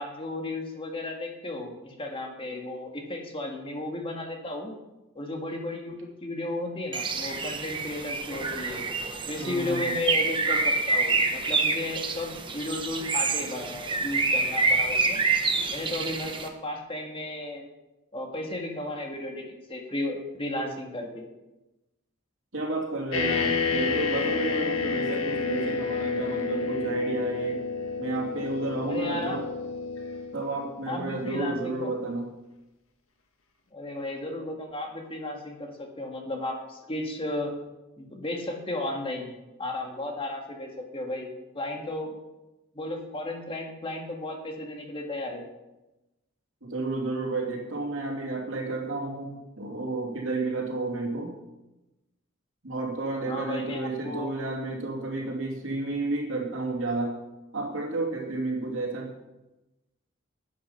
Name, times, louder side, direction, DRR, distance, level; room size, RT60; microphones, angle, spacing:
voice 1, 0.0-4.7 5.1-6.0 6.2-8.8 9.2-15.2 15.7-17.6 18.1-21.2 28.9-29.4 30.8-31.9 33.7-37.5 38.0-39.3 39.6-41.3 41.5-42.1 42.7-45.4 53.3-54.3, left 2 dB, 25° left, 2 dB, 1.8 m, -34 dB
Bird, 6.9-16.5, right 3 dB, 25° right, 1.1 m, -27 dB
voice 2, 9.4-9.9 22.5-27.6 28.0-29.4 30.3-32.2 46.6-51.3 52.6-57.1 57.5-59.1, right 2 dB, 65° right, -1 dB, 2.9 m, -31 dB
sound 1, 23.1-30.6, left 4 dB, 75° left, 1.6 m, -29 dB
11.0 x 9.4 x 5.8 m, 0.99 s
head